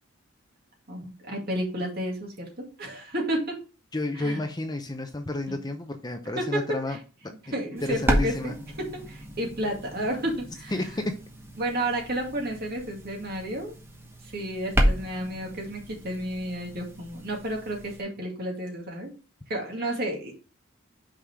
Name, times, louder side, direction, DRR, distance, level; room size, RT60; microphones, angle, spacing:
voice 1, 0.9-2.5 2.8-3.6 4.1-4.4 5.5-5.6 6.4-6.6 6.9-7.0 7.3-11.0 11.6-13.7 14.2-19.1 19.5-20.3, right 1 dB, 50° right, 0 dB, 2.2 m, -31 dB
voice 2, 3.9-7.0 7.2-7.5 7.8-8.6 10.7-11.2, left 2 dB, 20° left, 6 dB, 0.6 m, -31 dB
sound 1, 7.8-18.0, equal, 10° right, 1.0 m, -32 dB
5.8 x 4.8 x 4.9 m, 0.34 s
head